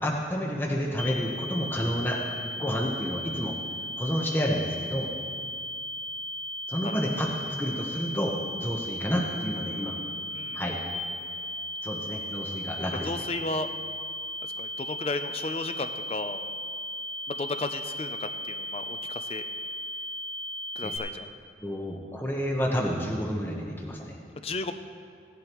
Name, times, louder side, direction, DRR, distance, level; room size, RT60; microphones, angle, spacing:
voice 1, 0.0-2.2 2.6-3.5 4.0-5.1 6.7-7.3 7.6-9.9 10.5-10.8 11.8-13.1 20.8-20.9 21.6-24.1, equal, 10° left, -1 dB, 1.0 m, -30 dB
sound 1, 1.0-21.0, left 1 dB, 30° right, 1.3 m, -36 dB
voice 2, 13.0-13.7 14.6-16.4 17.3-19.4 20.8-21.3 24.4-24.7, left 3 dB, 35° left, 9 dB, 0.5 m, -34 dB
16.5 x 11.0 x 3.0 m, 2.3 s
head